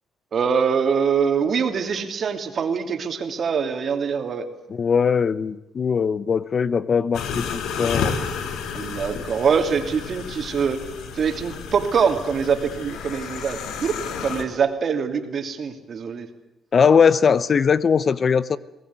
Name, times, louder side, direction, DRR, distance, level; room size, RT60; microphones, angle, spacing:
voice 1, 0.3-4.5 8.7-10.8 11.1-16.3, right 6 dB, 50° right, 7 dB, 2.8 m, -24 dB
voice 2, 4.7-8.1 16.7-18.6, left 6 dB, 45° left, 18 dB, 0.8 m, -20 dB
sound 1, 7.1-14.4, left 6 dB, 80° left, 2.5 m, -31 dB
22.5 x 18.5 x 9.5 m, 0.91 s
cardioid pair, 90°, 0 cm